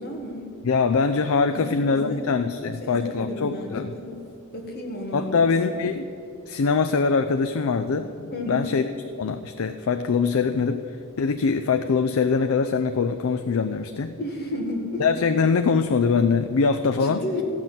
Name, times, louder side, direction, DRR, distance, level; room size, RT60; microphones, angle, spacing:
voice 1, 0.0-0.5 1.5-2.2 2.6-4.2 4.5-5.8 8.3-8.8 14.2-15.0 17.0-17.4, left 1 dB, 50° left, 1 dB, 1.8 m, -32 dB
voice 2, 0.6-3.9 5.1-6.1 6.5-8.8 9.2-14.2 15.0-17.2, left 5 dB, 80° left, 8 dB, 0.5 m, -23 dB
14.5 x 6.0 x 9.0 m, 2.7 s
head